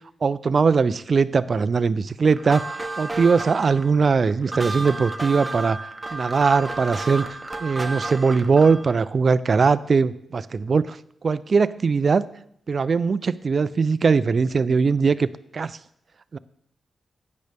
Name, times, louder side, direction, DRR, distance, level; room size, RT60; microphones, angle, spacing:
voice 1, 0.2-11.0 11.2-12.3 12.7-15.3 15.5-15.8 16.3-16.4, right 5 dB, 45° right, 16 dB, 0.4 m, -21 dB
sound 1, 2.3-8.9, right 2 dB, 15° right, 0.9 m, -32 dB
12.0 x 9.3 x 3.4 m, 0.71 s
wide cardioid pair, 120°, 0 cm